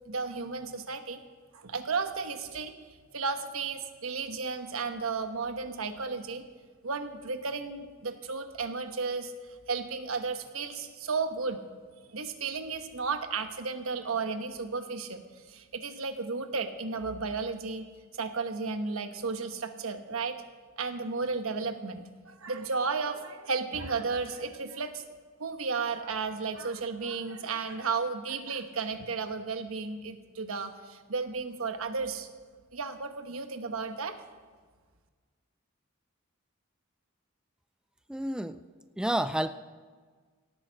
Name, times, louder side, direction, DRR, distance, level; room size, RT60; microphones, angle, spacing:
voice 1, 0.1-1.2 1.5-2.7 3.1-6.4 6.8-9.3 9.7-11.6 12.1-17.9 18.2-20.4 20.8-25.0 25.4-32.3 32.7-34.2, right 4 dB, 75° right, 8 dB, 1.1 m, -33 dB
voice 2, 38.1-38.6 39.0-39.5, right 1 dB, 5° right, 10 dB, 0.3 m, -29 dB
17.0 x 8.9 x 6.4 m, 1.5 s
head